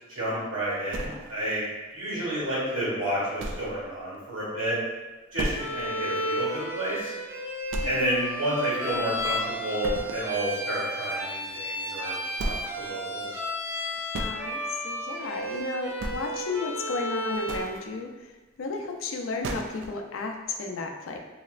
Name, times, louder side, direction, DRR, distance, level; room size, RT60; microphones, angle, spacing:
voice 1, 0.1-1.6 1.9-4.8 5.3-7.1 7.8-13.4, right 1 dB, 90° right, -7 dB, 1.4 m, -30 dB
sound 1, 0.9-1.7 2.1-2.2 2.7-2.8 3.4-3.8 4.1-4.2 4.6-4.7 5.4-5.9 6.3-6.4 6.9-7.0 7.7-8.3 8.6-9.4 9.8-10.3 11.7-11.8 12.3-12.8 13.7-14.4 15.4-15.6 15.9-16.5 17.2-17.8 19.0-19.1 19.4-20.0, right 2 dB, 65° right, 0.4 m, -35 dB
Bowed string instrument, 5.6-17.7, equal, 10° right, 0.5 m, -33 dB
voice 2, 14.2-18.1 18.6-21.2, left 3 dB, 75° left, 3 dB, 0.4 m, -33 dB
3.1 x 2.8 x 2.4 m, 1.2 s
head